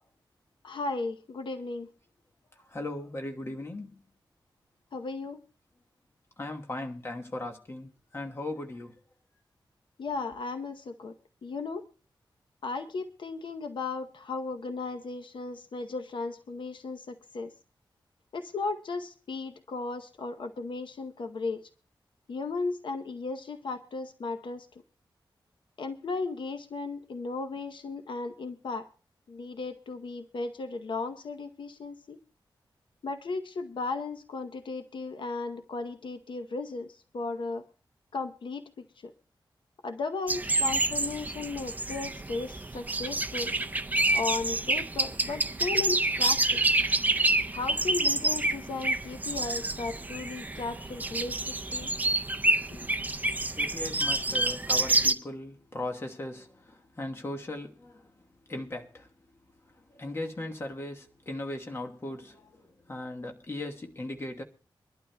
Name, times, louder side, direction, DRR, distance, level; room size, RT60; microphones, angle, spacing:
voice 1, 0.6-1.9 4.9-5.4 10.0-11.1 11.4-11.8 12.6-17.5 18.3-21.6 22.3-24.7 25.8-28.9 29.3-32.2 33.0-37.6 38.1-38.6 39.0-39.1 39.8-43.5 44.1-46.6 47.5-51.9 52.7-52.8, left 3 dB, 70° left, 0.8 m, -35 dB
voice 2, 2.5-4.0 6.4-9.0 53.5-59.1 59.7-64.4, left 2 dB, 30° left, 1.2 m, -38 dB
sound 1, 40.3-55.1, right 2 dB, 20° right, 0.5 m, -28 dB
24.0 x 12.0 x 2.2 m
wide cardioid pair, 140°, 8 cm